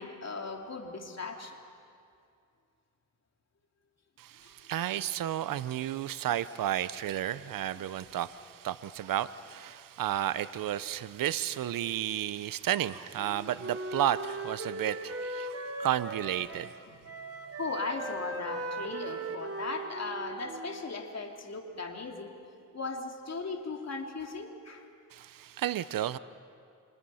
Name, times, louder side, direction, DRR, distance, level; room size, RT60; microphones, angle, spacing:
voice 1, 0.0-1.6 4.4-4.5 7.8-7.9 11.8-11.9 16.9-17.3 17.5-22.3 22.7-24.9, left 3 dB, 50° left, 3.0 m, -38 dB
voice 2, 4.2-16.7 25.1-26.2, right 11 dB, 85° right, 0.7 m, -32 dB
Wind instrument woodwind instrument, 13.2-16.8 17.0-21.0, right 2 dB, 45° right, 2.8 m, -39 dB
29.0 x 25.0 x 5.6 m
cardioid pair, 65°, 33 cm